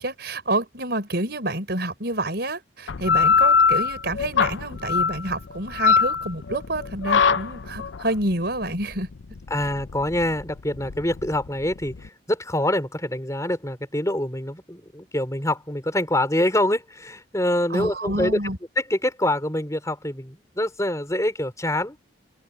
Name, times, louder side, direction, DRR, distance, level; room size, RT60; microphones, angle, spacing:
voice 1, 0.0-9.1 17.7-18.6, right 1 dB, 55° right, 5.4 m, -28 dB
sound 1, 2.9-12.1, left 6 dB, 75° left, 0.6 m, -22 dB
voice 2, 9.5-18.4 18.8-22.0, left 1 dB, 15° left, 4.7 m, -25 dB
open air
head